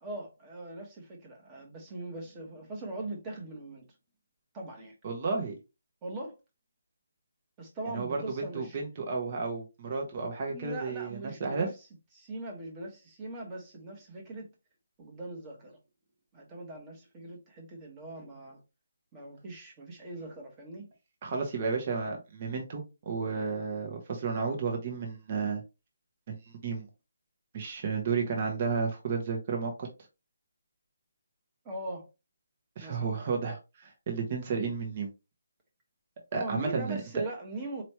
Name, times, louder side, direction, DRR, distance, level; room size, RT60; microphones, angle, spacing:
voice 1, 0.0-3.9 4.5-4.9 6.0-6.4 7.6-8.8 10.5-11.7 12.1-14.5 15.0-15.8 16.3-18.6 19.1-20.9 31.6-32.1 32.8-33.1 36.3-37.8, right 2 dB, 15° right, 1.2 m, -41 dB
voice 2, 5.0-5.5 7.9-11.7 21.2-25.6 26.3-26.4 26.6-26.9 27.5-29.9 32.8-35.1 36.3-37.0, right 5 dB, 35° right, 0.9 m, -32 dB
4.5 x 3.0 x 3.0 m
hypercardioid pair, 165°, 0 cm